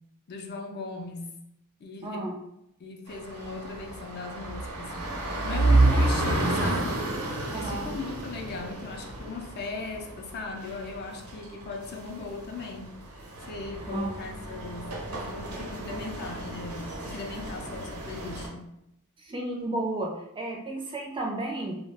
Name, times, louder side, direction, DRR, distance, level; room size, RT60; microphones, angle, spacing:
voice 1, 0.3-1.3 1.8-2.4 2.8-4.9 5.4-7.1 7.5-12.9 13.5-18.6, left 4 dB, 45° left, 2 dB, 0.4 m, -38 dB
voice 2, 2.0-2.3 7.5-7.9 13.9-14.1 19.2-21.8, right 2 dB, 20° right, 0 dB, 0.4 m, -32 dB
sound 1, 3.1-18.5, right 2 dB, 80° right, 0.7 m, -30 dB
2.3 x 2.1 x 3.4 m, 0.81 s
head